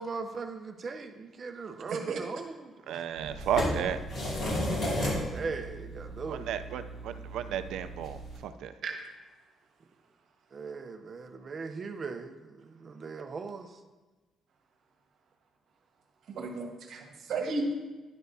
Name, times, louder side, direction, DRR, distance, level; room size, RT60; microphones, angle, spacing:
voice 1, 0.0-3.0 5.3-6.5 10.5-13.8, right 4 dB, 35° right, 7 dB, 0.6 m, -39 dB
voice 2, 1.9-2.2 8.8-8.9 16.3-17.7, right 3 dB, 65° right, 3 dB, 1.3 m, -33 dB
voice 3, 2.9-4.0 6.3-8.8, right 9 dB, 80° right, 10 dB, 0.4 m, -33 dB
sound 1, 3.2-8.4, equal, 50° left, 2.4 m, -34 dB
11.0 x 6.3 x 2.7 m, 1.3 s
cardioid pair, 130°, 0 cm